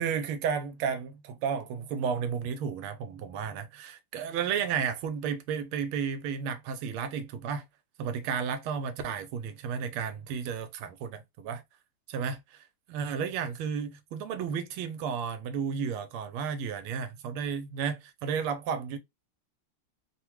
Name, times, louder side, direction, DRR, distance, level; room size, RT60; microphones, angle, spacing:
voice 1, 0.0-7.6 8.0-11.6 12.1-12.4 12.9-19.0, right 7 dB, 80° right, 1.5 m, -32 dB
3.7 x 2.1 x 3.0 m
omnidirectional pair, 2.3 m